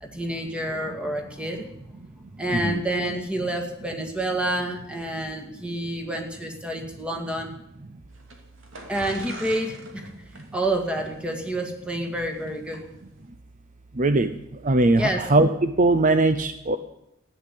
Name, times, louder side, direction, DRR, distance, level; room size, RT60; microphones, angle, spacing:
voice 1, 0.0-1.7 2.4-7.5 8.9-10.1 10.5-12.8 15.0-15.2, right 1 dB, 5° right, 4 dB, 2.1 m, -28 dB
sound 1, 8.1-12.8, right 2 dB, 75° right, 2.6 m, -43 dB
voice 2, 14.0-14.4 14.6-16.8, right 2 dB, 40° right, 10 dB, 0.6 m, -20 dB
15.0 x 10.0 x 8.4 m, 0.83 s
head